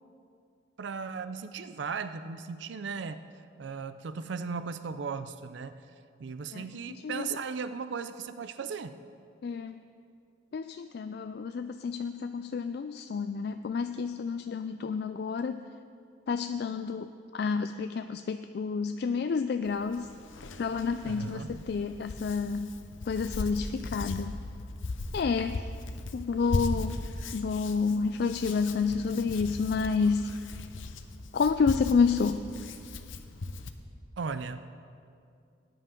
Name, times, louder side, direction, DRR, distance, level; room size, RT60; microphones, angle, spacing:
voice 1, 0.8-3.2 3.6-5.8 6.2-8.9 21.0-21.7 34.2-34.6, right 5 dB, 70° right, 12 dB, 0.4 m, -37 dB
voice 2, 9.4-9.7 10.5-15.6 16.3-20.1 20.6-22.7 23.1-24.3 25.1-25.6 26.1-27.0 27.3-30.3 31.3-32.4, left 5 dB, 55° left, 8 dB, 0.3 m, -29 dB
Hands, 19.7-33.7, left 2 dB, 85° left, 0.7 m, -38 dB
18.5 x 9.9 x 3.7 m, 2.4 s
head